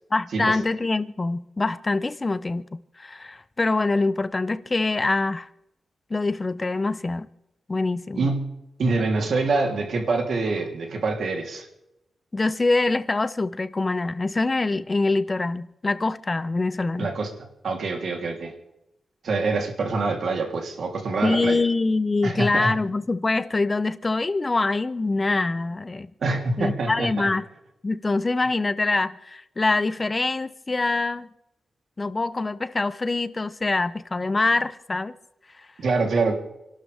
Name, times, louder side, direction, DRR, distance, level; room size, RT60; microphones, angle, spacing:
voice 1, 0.1-5.5 6.1-7.3 7.7-8.3 12.3-17.1 21.2-26.1 26.6-27.4 27.8-31.3 32.0-35.1 35.6-35.7, left 3 dB, 25° left, 0.5 m, -24 dB
voice 2, 8.1-8.5 8.8-11.7 17.0-18.6 19.2-21.6 22.2-22.7 26.2-27.3 35.8-36.3, right 3 dB, 65° right, 3.2 m, -25 dB
29.0 x 12.5 x 3.5 m
wide cardioid pair, 160°, 0 cm